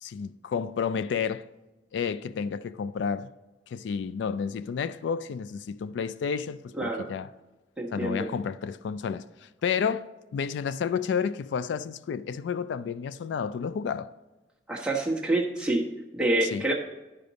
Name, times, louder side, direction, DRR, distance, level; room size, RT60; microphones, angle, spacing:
voice 1, 0.0-1.5 1.9-3.3 3.7-7.3 7.9-14.1 16.4-16.7, left 6 dB, 90° left, 0.3 m, -31 dB
voice 2, 7.8-8.3 14.7-15.8 16.1-16.7, right 2 dB, 5° right, 1.0 m, -27 dB
11.0 x 5.1 x 4.0 m
head